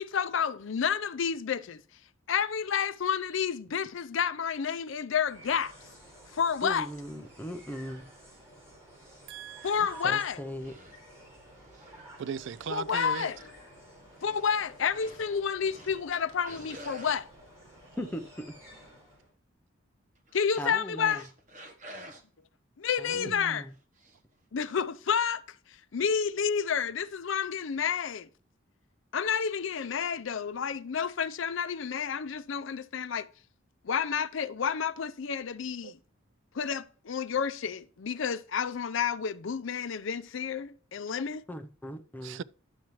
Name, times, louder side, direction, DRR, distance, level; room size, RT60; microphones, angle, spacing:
voice 1, 0.0-1.8 2.3-5.7 6.3-6.9 9.6-10.4 12.7-13.4 14.2-17.3 20.3-21.3 22.8-23.7 24.5-25.4 25.7-28.3 29.1-33.3 33.8-36.0 36.5-41.4, left 7 dB, 65° left, 0.5 m, -30 dB
sound 1, 5.1-19.3, equal, 15° right, 4.5 m, -53 dB
voice 2, 6.6-8.1 9.8-10.8 18.0-18.5 20.6-21.2 23.0-23.7 41.5-42.4, equal, 10° left, 0.6 m, -39 dB
voice 3, 9.3-9.8 12.2-13.3 35.8-35.9 42.2-42.4, right 7 dB, 60° right, 0.3 m, -37 dB
sound 2, 9.6-10.0 10.6-11.0 11.6-12.1 12.5-12.8 13.2-13.6 14.2-14.5 14.9-15.3 15.6-16.2 16.4-17.2 20.2-22.2 23.3-23.5 24.0-24.2 24.6-24.8, right 1 dB, 40° right, 1.2 m, -50 dB
10.5 x 7.2 x 3.1 m
head